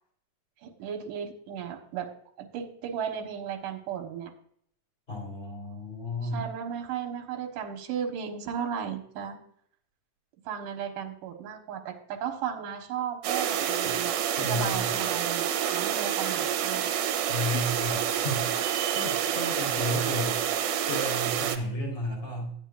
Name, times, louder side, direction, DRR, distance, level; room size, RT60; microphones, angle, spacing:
voice 1, 0.6-2.1 2.4-4.3 6.2-9.4 10.4-14.1 14.4-16.9 17.5-17.7, right 8 dB, 65° right, 3 dB, 2.8 m, -35 dB
voice 2, 5.1-6.4 14.4-14.9 17.3-20.4 20.8-22.6, left 1 dB, 15° left, -1 dB, 4.4 m, -33 dB
sound 1, 13.2-21.6, right 9 dB, 80° right, 2.7 m, -28 dB
13.0 x 8.9 x 2.6 m, 0.64 s
omnidirectional pair, 4.3 m